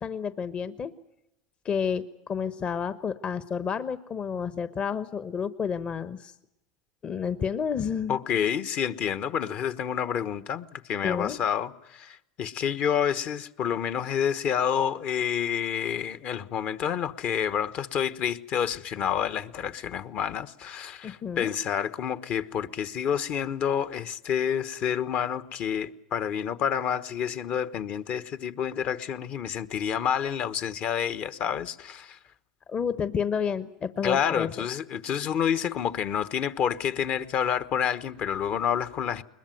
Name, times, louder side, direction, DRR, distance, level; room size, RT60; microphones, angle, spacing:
voice 1, 0.0-0.9 1.6-6.3 7.0-8.2 11.0-11.4 21.0-21.5 32.7-34.5, left 7 dB, 35° left, 1.1 m, -30 dB
voice 2, 8.1-32.2 34.0-39.2, left 8 dB, 50° left, 1.2 m, -29 dB
21.5 x 21.0 x 9.2 m
hypercardioid pair, 95°, 3 cm